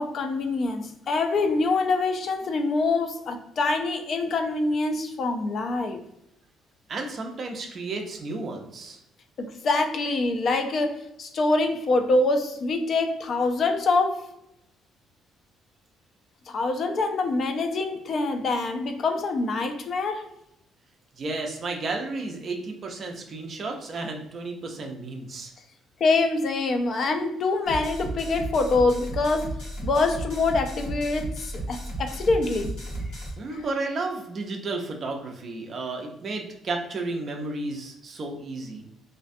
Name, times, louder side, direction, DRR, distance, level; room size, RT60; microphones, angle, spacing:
voice 1, 0.0-6.0 9.4-14.3 16.5-20.3 26.0-32.7 33.5-33.6, left 3 dB, 40° left, 5 dB, 0.3 m, -25 dB
voice 2, 6.9-9.0 21.2-25.5 33.4-38.9, right 3 dB, 35° right, 2 dB, 0.4 m, -32 dB
sound 1, 27.7-33.3, right 1 dB, 85° left, 1.1 m, -34 dB
2.4 x 2.1 x 2.5 m, 0.81 s
cardioid pair, 160°, 0 cm